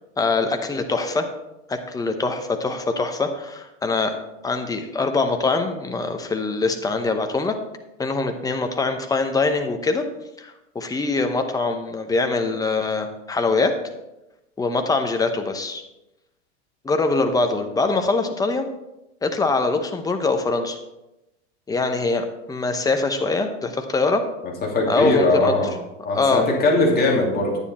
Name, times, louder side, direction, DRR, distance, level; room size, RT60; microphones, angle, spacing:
voice 1, 0.2-1.3 1.7-4.1 4.4-7.5 8.0-10.0 10.4-13.7 14.6-15.8 16.8-18.7 19.2-20.8 21.7-24.2 24.9-25.5 26.1-26.5, left 3 dB, 10° left, 6 dB, 0.9 m, -23 dB
voice 2, 24.4-25.8 26.0-27.6, left 2 dB, 25° left, -1 dB, 2.7 m, -20 dB
9.9 x 9.6 x 4.3 m, 0.95 s
supercardioid pair, 135°, 36 cm